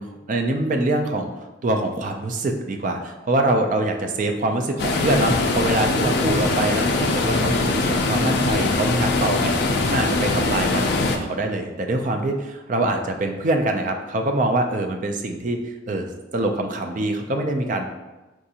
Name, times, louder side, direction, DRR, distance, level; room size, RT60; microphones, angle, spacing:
voice 1, 0.0-15.6 15.9-17.9, right 2 dB, 40° right, 4 dB, 0.4 m, -24 dB
sound 1, 4.8-11.2, left 3 dB, 55° left, 0.4 m, -22 dB
4.6 x 2.5 x 2.7 m, 1.1 s
head